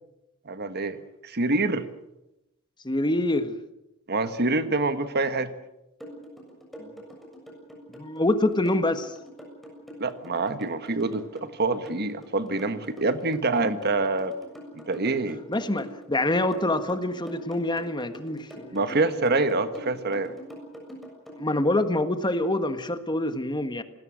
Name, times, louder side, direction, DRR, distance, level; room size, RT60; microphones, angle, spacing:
voice 1, 0.4-1.0 1.2-1.9 4.1-5.5 10.0-14.3 14.9-15.4 18.7-20.3, right 3 dB, 50° right, 10 dB, 1.5 m, -26 dB
voice 2, 2.8-3.5 6.8-6.9 7.9-9.1 15.5-19.5 21.4-23.8, left 1 dB, 20° left, 9 dB, 1.5 m, -26 dB
sound 1, 6.0-21.4, equal, ahead, 7.1 m, -43 dB
27.5 x 20.0 x 6.4 m, 0.89 s
head